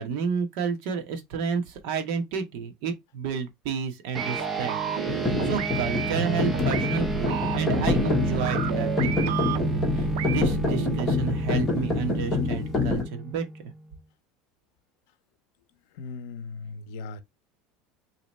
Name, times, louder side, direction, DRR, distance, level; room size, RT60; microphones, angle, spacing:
voice 1, 0.0-4.8 5.2-13.5, right 6 dB, 55° right, 1.0 m, -31 dB
sound 1, 4.1-13.9, right 2 dB, 10° right, 0.6 m, -32 dB
sound 2, 4.1-11.1, right 10 dB, 80° right, 0.4 m, -32 dB
sound 3, 5.1-13.0, left 3 dB, 15° left, 1.2 m, -27 dB
voice 2, 16.0-17.2, left 4 dB, 70° left, 0.6 m, -38 dB
3.0 x 2.9 x 4.1 m
cardioid pair, 175°, 0 cm